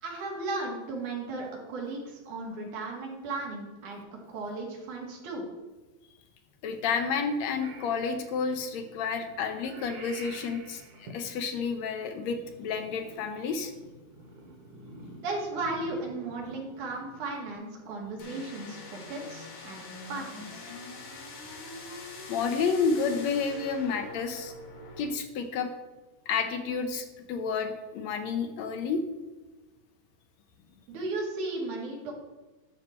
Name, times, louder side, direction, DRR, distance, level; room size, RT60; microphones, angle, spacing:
voice 1, 0.0-5.4 15.2-19.8 20.1-20.7 30.9-32.1, right 2 dB, 90° right, -1 dB, 3.5 m, -35 dB
voice 2, 6.6-13.7 22.3-24.5 25.0-25.7 26.3-29.0, left 5 dB, 70° left, 7 dB, 1.9 m, -30 dB
Purr / Meow, 7.6-17.5, right 2 dB, 65° right, 2.6 m, -49 dB
sound 1, 18.2-25.1, left 2 dB, 90° left, 3.7 m, -43 dB
12.0 x 6.6 x 4.4 m, 1.2 s
omnidirectional pair, 3.4 m